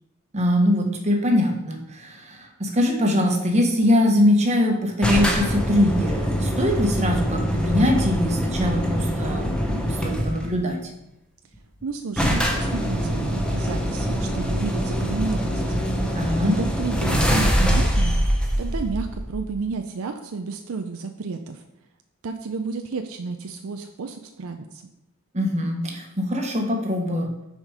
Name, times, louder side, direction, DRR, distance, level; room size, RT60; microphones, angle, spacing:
voice 1, 0.3-10.8 16.1-16.6 25.3-27.4, left 1 dB, 30° right, 2 dB, 1.1 m, -22 dB
sound 1, 5.0-10.5 11.5-11.6 11.8-11.9 12.2-19.6, equal, 5° left, 0.8 m, -24 dB
voice 2, 11.8-15.8 16.4-21.6 22.2-24.8, right 4 dB, 70° right, 6 dB, 0.5 m, -31 dB
6.4 x 5.0 x 4.9 m, 0.89 s
head